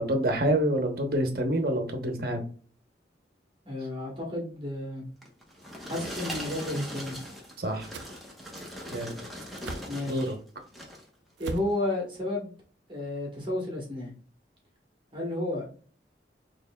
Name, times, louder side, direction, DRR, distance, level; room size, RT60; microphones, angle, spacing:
voice 1, 0.0-2.4 7.6-7.9 8.9-9.2 10.1-10.4, right 1 dB, 55° right, 5 dB, 1.0 m, -27 dB
voice 2, 3.6-5.1 5.8-7.2 9.9-10.3 11.4-12.5 12.9-14.1 15.1-15.6, left 1 dB, 25° right, -2 dB, 1.3 m, -32 dB
sound 1, 5.2-10.3 10.7-11.1 11.7-11.8, equal, ahead, 1.0 m, -40 dB
sound 2, 6.3-6.5 7.9-8.1 9.6-9.9 11.4-11.7, right 3 dB, 75° right, 0.5 m, -38 dB
6.5 x 3.3 x 2.3 m, 0.42 s
head